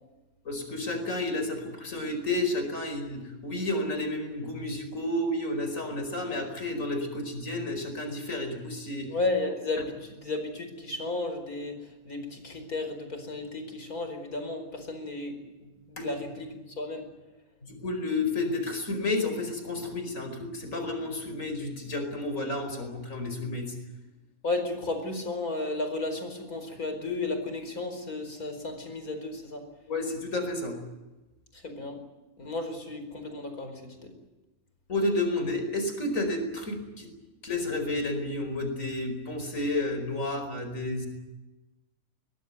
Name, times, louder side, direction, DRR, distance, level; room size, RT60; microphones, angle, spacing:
voice 1, 0.4-9.1 16.0-16.1 17.6-23.7 29.9-30.8 34.9-37.1 37.4-41.1, left 2 dB, 60° left, 6 dB, 5.2 m, -31 dB
voice 2, 9.1-11.8 12.0-15.3 15.9-17.1 24.4-29.6 31.6-32.0 32.4-34.1, left 2 dB, 75° left, 7 dB, 5.3 m, -33 dB
22.0 x 21.5 x 9.5 m, 1.1 s
omnidirectional pair, 1.6 m